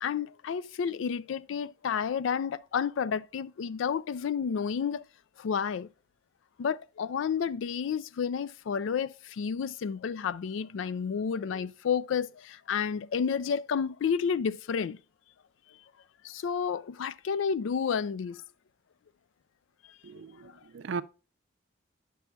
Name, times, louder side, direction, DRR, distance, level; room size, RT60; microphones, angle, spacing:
voice 1, 0.0-5.0 5.4-5.9 6.6-15.0 16.2-18.4 20.4-20.5, left 6 dB, 80° left, 0.3 m, -31 dB
voice 2, 20.0-21.0, right 5 dB, 75° right, 0.4 m, -37 dB
9.2 x 6.1 x 2.3 m
head